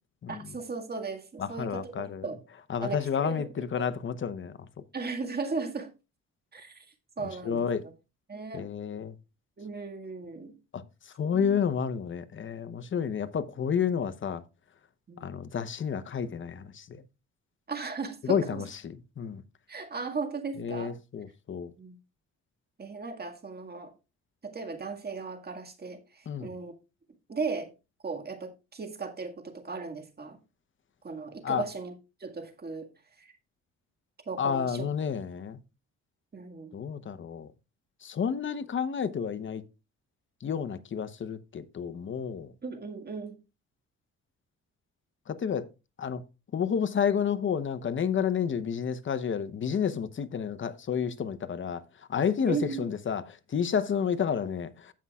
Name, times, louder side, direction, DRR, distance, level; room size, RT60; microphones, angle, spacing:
voice 1, 0.3-2.4 2.8-3.9 4.9-5.9 6.5-6.9 7.2-7.6 8.3-8.7 9.6-10.5 11.3-11.7 15.1-15.4 17.7-18.6 19.7-20.9 21.8-22.0 22.8-23.9 24.4-26.7 27.3-27.7 28.0-30.4 31.0-31.9 32.2-32.9 33.2-33.3 34.3-34.9 36.3-36.7 42.6-43.4 52.5-52.8, right 4 dB, 30° right, 1.8 m, -36 dB
voice 2, 1.4-2.3 2.7-4.7 7.4-7.8 8.5-9.1 10.7-10.8 11.2-14.4 15.2-17.0 18.2-19.4 20.6-21.7 26.3-26.5 31.4-31.6 34.4-35.6 36.7-37.5 38.0-39.6 40.4-42.5 45.3-45.7 46.0-46.2 46.5-51.8 52.1-54.9, left 7 dB, 40° left, 0.9 m, -30 dB
16.0 x 5.5 x 2.4 m
cardioid pair, 90°, 30 cm